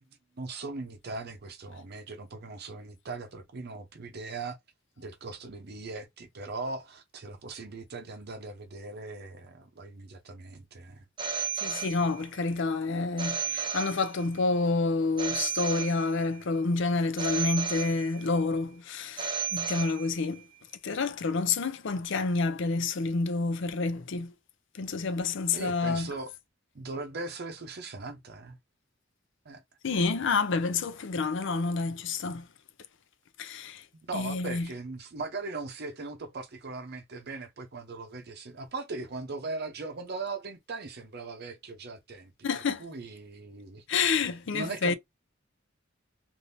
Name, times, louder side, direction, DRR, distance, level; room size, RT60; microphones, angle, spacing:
voice 1, 0.4-4.6 5.0-11.0 25.5-26.3 26.7-28.6 29.4-29.6 34.0-42.3 42.8-43.8 44.5-44.9, right 3 dB, 55° right, 0.7 m, -39 dB
Telephone, 11.2-12.4 13.2-14.4 15.2-16.4 17.2-18.4 19.2-20.4, right 6 dB, 25° right, 0.7 m, -34 dB
voice 2, 11.5-20.4 20.8-24.3 24.7-26.1 29.8-32.5 33.4-33.8 34.1-34.7 42.4-42.8 43.9-44.9, left 4 dB, 65° left, 0.5 m, -28 dB
3.4 x 2.6 x 2.7 m
head